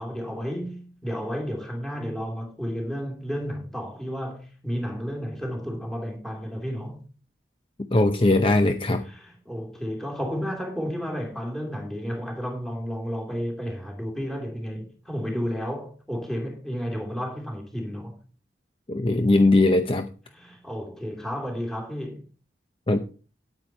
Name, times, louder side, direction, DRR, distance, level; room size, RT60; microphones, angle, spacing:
voice 1, 0.0-7.0 9.0-18.2 20.3-22.2, equal, ahead, 2.7 m, -32 dB
voice 2, 7.9-9.0 18.9-20.1 22.9-23.0, left 2 dB, 30° left, 0.6 m, -20 dB
9.2 x 9.1 x 4.4 m
head